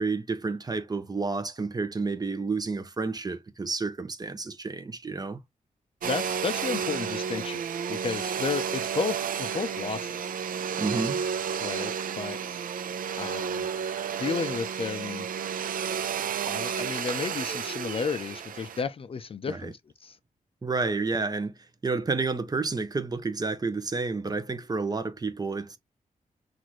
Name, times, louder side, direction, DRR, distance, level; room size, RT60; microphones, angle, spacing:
voice 1, 0.0-5.4 10.8-11.2 19.5-19.7 20.6-21.5 21.8-25.8, right 3 dB, 30° right, 0.7 m, -30 dB
voice 2, 6.0-7.6 7.9-10.4 11.6-12.6 13.2-13.7 14.2-15.3 16.5-20.2, left 6 dB, 40° left, 0.4 m, -33 dB
Domestic sounds home sounds, 6.0-18.8, right 7 dB, 80° right, 0.5 m, -31 dB
5.8 x 2.5 x 3.1 m
wide cardioid pair, 110°, 14 cm